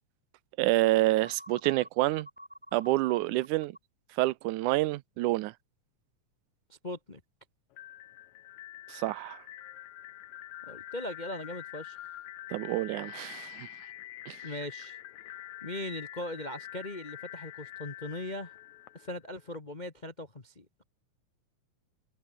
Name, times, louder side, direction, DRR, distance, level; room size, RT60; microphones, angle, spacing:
voice 1, 0.6-2.3 2.7-3.8 4.1-5.5 8.9-9.4 12.5-13.7 14.3-14.4, right 18 dB, 85° right, 2.2 m, -28 dB
sound 1, 1.2-3.8, equal, ahead, 6.7 m, -48 dB
voice 2, 6.7-7.2 10.7-12.0 14.4-15.0 15.6-18.6 18.9-20.8, left 1 dB, 35° left, 0.7 m, -39 dB
sound 2, 7.7-19.6, left 14 dB, 75° left, 2.3 m, -46 dB
omnidirectional pair, 3.5 m